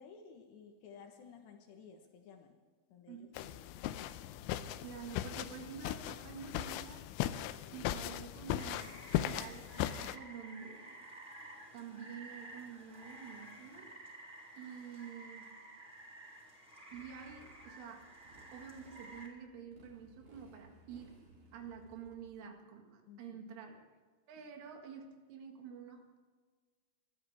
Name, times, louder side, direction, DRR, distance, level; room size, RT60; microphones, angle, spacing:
voice 1, 0.0-2.6 2.9-3.7 23.1-23.5, left 6 dB, 70° left, 4 dB, 3.2 m, -55 dB
sound 1, 3.4-10.2, left 13 dB, 85° left, 3.1 m, -38 dB
voice 2, 4.8-7.1 7.7-11.1 11.7-13.9 14.5-15.5 16.9-18.1 18.5-21.2 21.5-23.8 24.3-26.2, right 7 dB, 75° right, 3 dB, 4.4 m, -49 dB
Rain, 8.6-19.3, right 2 dB, 15° right, 4.3 m, -53 dB
Motorcycle, 16.9-22.3, right 2 dB, 40° right, 4.4 m, -62 dB
22.5 x 13.5 x 3.6 m, 1.5 s
omnidirectional pair, 5.8 m